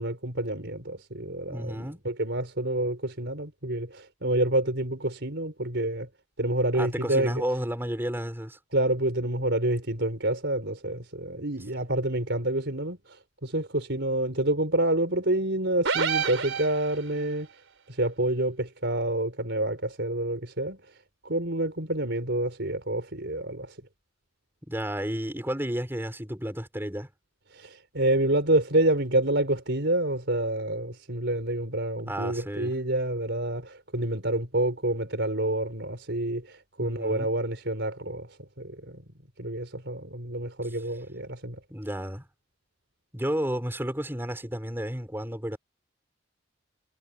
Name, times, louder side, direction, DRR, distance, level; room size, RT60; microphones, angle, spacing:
voice 1, 0.0-6.1 6.4-7.3 8.7-17.5 17.9-21.0 21.2-23.8 27.5-39.0 39.4-41.6, right 1 dB, 65° right, 5.4 m, -28 dB
voice 2, 1.5-2.0 6.7-8.6 24.7-27.1 32.1-32.8 36.8-37.3 40.6-40.8 41.7-42.3 43.1-45.6, equal, 10° right, 5.6 m, -32 dB
sound 1, 15.8-17.2, right 6 dB, 85° right, 3.8 m, -28 dB
head